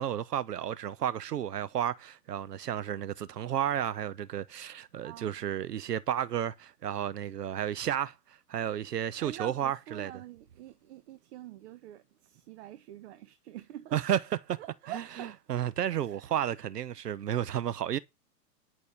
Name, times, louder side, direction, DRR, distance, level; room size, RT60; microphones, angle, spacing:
voice 1, 0.0-10.1 13.9-14.2 14.5-14.6 14.9-18.0, right 10 dB, 70° right, 0.9 m, -32 dB
voice 2, 5.0-5.3 9.2-14.0 14.6-15.4 15.9-16.2, right 12 dB, 40° right, 1.3 m, -45 dB
10.5 x 6.4 x 6.9 m
hypercardioid pair, 120°, 49 cm